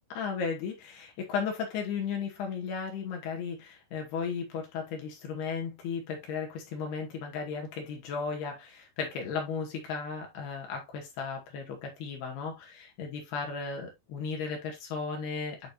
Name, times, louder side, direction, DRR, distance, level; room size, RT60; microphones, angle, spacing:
voice 1, 0.1-15.7, left 5 dB, 75° left, 4.1 m, -35 dB
9.1 x 4.8 x 2.7 m
omnidirectional pair, 4.7 m